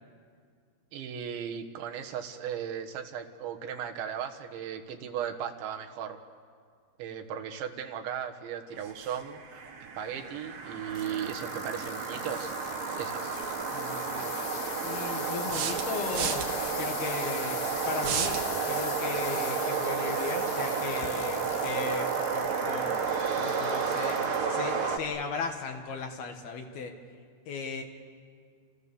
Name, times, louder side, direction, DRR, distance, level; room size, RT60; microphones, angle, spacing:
voice 1, 0.9-6.2 7.0-9.4 10.0-12.5 13.0-13.4, right 8 dB, 80° right, 4 dB, 3.8 m, -36 dB
sound 1, 8.8-25.0, right 5 dB, 50° right, 2.5 m, -32 dB
sound 2, 10.9-24.4 24.9-25.4 26.0-26.1, left 8 dB, 80° left, 4.3 m, -41 dB
sound 3, 13.4-13.5 15.5-16.5 18.0-18.4, right 8 dB, 65° right, 2.9 m, -31 dB
voice 2, 13.7-14.3 14.8-17.6 17.9-23.0 23.4-24.2 24.5-26.9 27.5-27.8, left 5 dB, 65° left, 4 dB, 3.3 m, -37 dB
29.5 x 29.0 x 7.0 m, 2.1 s
omnidirectional pair, 5.2 m